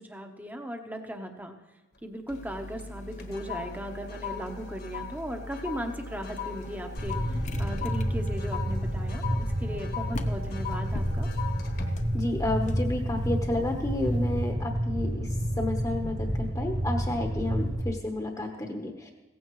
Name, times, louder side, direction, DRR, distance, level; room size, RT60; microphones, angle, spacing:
voice 1, 0.0-1.5 2.0-11.3, equal, 10° right, 5 dB, 1.0 m, -37 dB
sound 1, 1.9-2.5 2.8-13.3 13.8-14.1, left 8 dB, 55° left, 1.4 m, -41 dB
sound 2, 2.3-14.5, left 1 dB, 35° left, 0.7 m, -41 dB
Fire, 7.0-17.8, equal, 75° right, 4.7 m, -30 dB
voice 2, 12.1-19.1, left 1 dB, 15° left, 2 dB, 1.0 m, -31 dB
16.5 x 15.0 x 3.1 m, 1.1 s
head